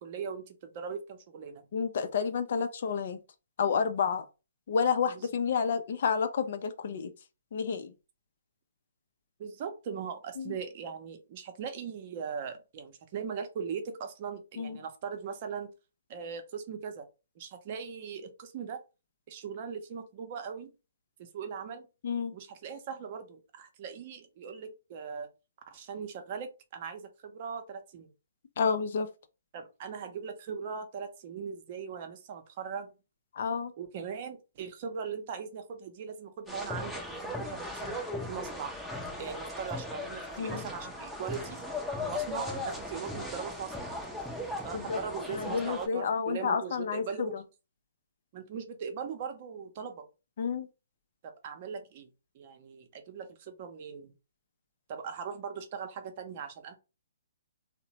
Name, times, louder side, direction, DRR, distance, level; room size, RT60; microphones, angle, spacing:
voice 1, 0.0-1.6 5.1-5.3 9.4-15.7 16.1-17.1 17.4-18.8 19.3-20.7 21.2-21.9 22.3-25.3 25.7-28.1 29.5-32.9 33.8-38.0 38.3-38.7 39.2-41.6 42.0-43.9 44.6-47.4 48.3-50.1 51.2-52.1 52.3-54.1 54.9-56.8, right 6 dB, 45° right, 0.6 m, -40 dB
voice 2, 1.7-3.2 3.6-4.3 4.7-7.1 7.5-7.9 10.4-10.6 14.6-14.8 22.0-22.3 28.6-29.1 33.3-33.7 40.4-40.6 44.7-45.0 45.3-47.4 50.4-50.7, left 6 dB, 55° left, 0.4 m, -30 dB
sound 1, 36.5-45.9, left 2 dB, ahead, 0.6 m, -38 dB
2.8 x 2.1 x 2.8 m
hypercardioid pair, 130°, 0 cm